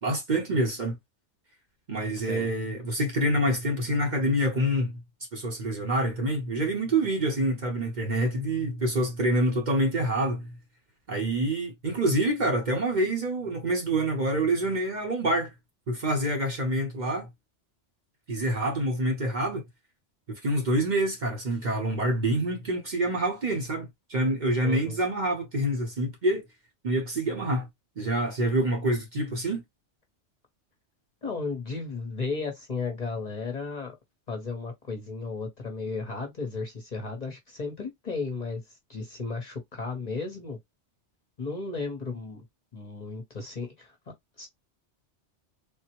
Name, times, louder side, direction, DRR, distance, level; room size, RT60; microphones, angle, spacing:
voice 1, 0.0-1.0 1.9-5.0 5.3-10.6 11.1-15.5 15.9-17.3 18.3-19.6 20.3-26.4 26.8-27.7 28.0-29.6, right 1 dB, 45° right, 0.9 m, -27 dB
voice 2, 2.2-2.5 24.6-25.0 31.2-34.0 34.3-40.6 41.4-42.4 42.7-44.0 44.4-44.5, left 4 dB, 40° left, 0.8 m, -34 dB
3.6 x 2.1 x 2.9 m
omnidirectional pair, 1.2 m